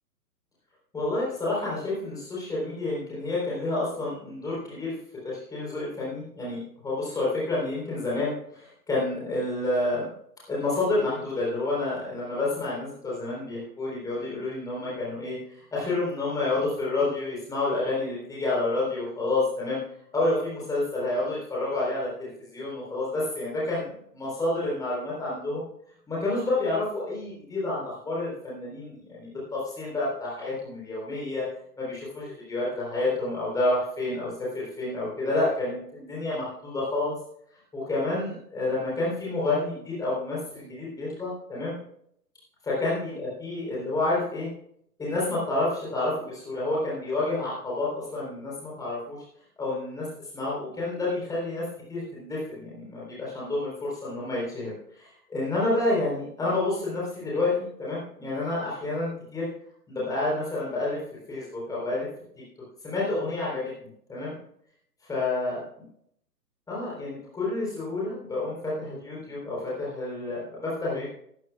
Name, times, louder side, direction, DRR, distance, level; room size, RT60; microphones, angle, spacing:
voice 1, 0.9-4.9 5.2-10.0 10.5-19.8 20.1-25.6 26.1-31.4 31.8-37.1 37.7-41.7 42.6-44.5 45.0-49.2 49.6-50.1 50.3-51.6 51.9-59.5 59.9-61.0 61.3-62.1 62.8-63.7 64.1-64.4 65.1-65.6 66.7-71.1, left 2 dB, 5° left, -6 dB, 3.8 m, -29 dB
18.5 x 12.5 x 2.4 m, 0.68 s
figure-of-eight pair, 130°, 50 cm